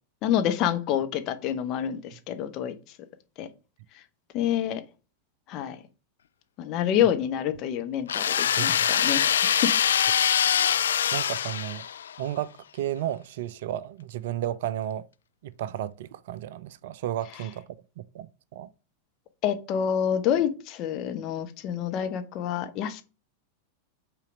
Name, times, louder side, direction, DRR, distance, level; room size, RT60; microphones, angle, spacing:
voice 1, 0.2-2.7 3.4-3.5 4.3-4.8 5.5-5.8 6.6-9.7 19.4-23.0, left 9 dB, 40° left, 1.0 m, -27 dB
sound 1, 8.1-12.2, left 9 dB, 65° left, 0.3 m, -24 dB
voice 2, 8.6-8.9 11.1-11.8 12.2-15.0 15.4-17.7 18.0-18.7, right 12 dB, 55° right, 0.4 m, -33 dB
5.7 x 3.8 x 5.9 m
figure-of-eight pair, 90°, 0 cm